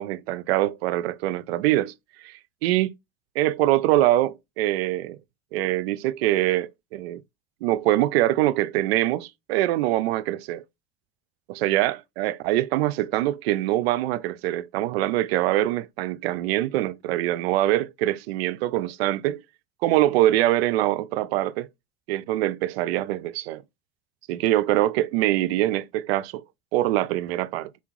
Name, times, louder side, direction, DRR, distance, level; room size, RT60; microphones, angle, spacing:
voice 1, 0.0-1.9 2.2-2.9 3.4-5.2 5.5-7.2 7.6-10.6 11.5-19.4 19.8-21.7 22.1-23.6 24.3-26.4 26.7-27.7, right 15 dB, 90° right, 0.5 m, -24 dB
4.3 x 3.5 x 3.1 m
supercardioid pair, 100°, 30 cm